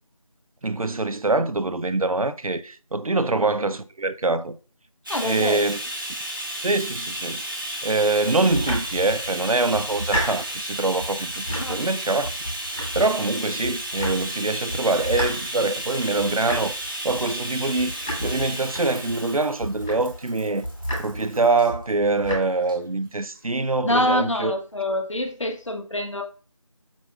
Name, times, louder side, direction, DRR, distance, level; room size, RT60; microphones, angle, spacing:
voice 1, 0.6-4.6 5.2-5.8 6.6-7.4 7.8-12.3 12.9-16.7 17.0-20.6 21.0-24.5, right 3 dB, 90° right, 0.6 m, -24 dB
voice 2, 5.1-5.7 11.6-11.8 23.8-26.2, left 1 dB, 60° left, 1.1 m, -25 dB
Bathtub (filling or washing), 5.1-21.7 22.6-22.8 23.1-23.2, right 1 dB, 40° right, 1.2 m, -33 dB
Domestic sounds home sounds, 8.4-9.3 9.7-10.6 11.0-11.9 12.2-13.3 13.6-14.4 14.7-19.2 19.6-20.3 20.6-21.4 21.7-22.4, equal, 10° left, 2.9 m, -32 dB
7.5 x 5.3 x 2.4 m
figure-of-eight pair, 175°, 17 cm